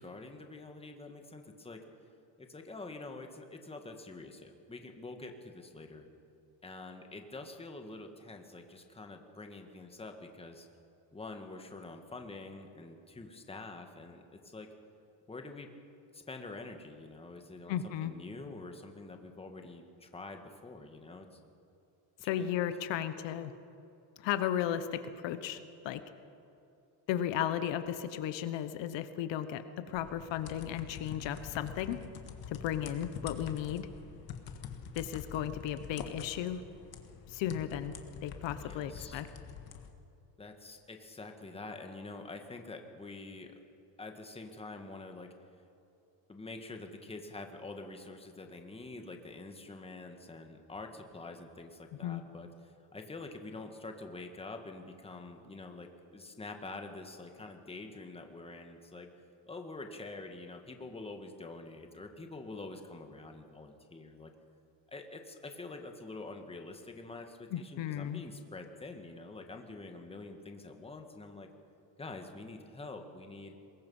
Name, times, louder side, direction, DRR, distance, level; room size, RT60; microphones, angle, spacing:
voice 1, 0.0-1.8 2.4-6.1 6.6-10.7 11.1-14.7 15.3-15.7 16.1-21.4 22.2-22.5 38.6-39.2 40.4-43.5 44.0-45.3 46.3-52.5 52.9-59.1 59.5-64.3 64.9-71.5 72.0-73.5, left 3 dB, 15° left, 5 dB, 1.6 m, -46 dB
voice 2, 17.7-18.1 22.2-23.5 24.2-25.6 25.8-26.0 27.1-32.0 32.5-33.9 34.9-36.6 37.3-37.9 38.2-39.3 52.0-52.2 67.5-68.2, left 10 dB, 75° left, 11 dB, 1.2 m, -35 dB
sound 1, 29.9-39.9, left 7 dB, 55° left, 1.7 m, -46 dB
23.0 x 21.0 x 5.5 m, 2.7 s
cardioid pair, 150°, 45 cm